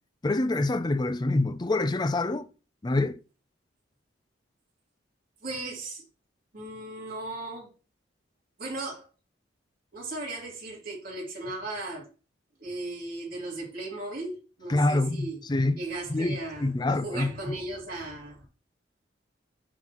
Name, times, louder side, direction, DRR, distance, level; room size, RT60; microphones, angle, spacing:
voice 1, 0.2-2.5 2.8-3.2 14.7-15.8 16.1-17.5, left 2 dB, 20° left, 0.4 m, -26 dB
voice 2, 5.4-6.0 6.5-7.7 8.6-9.1 9.9-12.1 12.6-15.4 15.7-18.5, right 2 dB, 50° right, 3.1 m, -37 dB
10.5 x 4.0 x 3.0 m
head